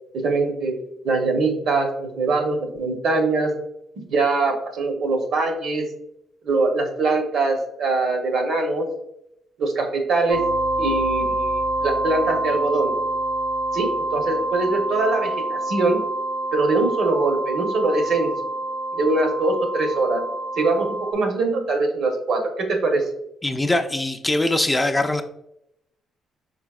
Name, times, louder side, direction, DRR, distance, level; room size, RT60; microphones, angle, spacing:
voice 1, 0.1-0.8 1.0-3.5 4.0-5.9 6.4-8.9 9.6-10.4 10.8-12.9 13.7-16.0 16.5-18.3 18.9-20.2 20.6-23.0, right 3 dB, 70° right, 4 dB, 0.9 m, -22 dB
sound 1, 10.3-21.1, right 2 dB, 90° right, 1.4 m, -26 dB
voice 2, 23.4-25.2, left 1 dB, 15° left, 6 dB, 0.4 m, -22 dB
5.0 x 4.0 x 2.3 m, 0.81 s
cardioid pair, 90°, 0 cm